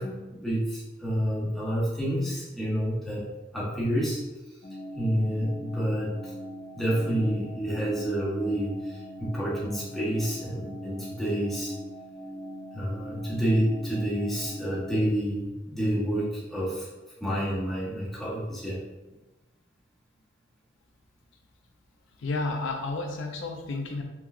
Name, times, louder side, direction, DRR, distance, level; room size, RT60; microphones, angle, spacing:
voice 1, 0.0-3.2 3.5-4.2 4.9-6.3 6.7-11.7 12.7-16.9 17.2-18.8, equal, ahead, -8 dB, 1.1 m, -29 dB
sound 1, 4.6-14.9, equal, 45° left, 0.6 m, -41 dB
voice 2, 22.2-24.0, left 3 dB, 85° left, 3 dB, 0.5 m, -31 dB
5.6 x 3.0 x 2.2 m, 1.1 s
head